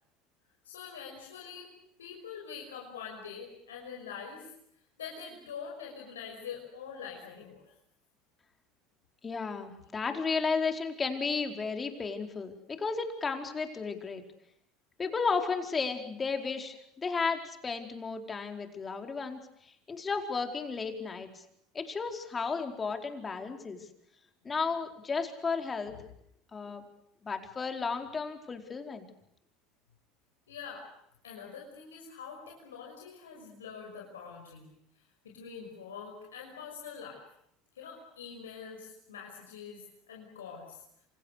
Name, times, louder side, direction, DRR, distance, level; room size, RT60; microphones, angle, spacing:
voice 1, 0.6-1.7 2.0-4.5 5.0-7.7 9.8-9.9 25.9-26.0 30.5-30.9 31.2-34.7 34.9-37.2 37.7-41.0, left 6 dB, 90° left, -1 dB, 5.9 m, -45 dB
voice 2, 9.2-14.2 15.0-19.4 19.9-21.4 21.7-23.9 24.4-25.9 26.5-26.8 27.2-29.1, left 4 dB, 25° left, 5 dB, 4.6 m, -33 dB
27.5 x 27.5 x 6.7 m, 0.74 s
hypercardioid pair, 80°, 0 cm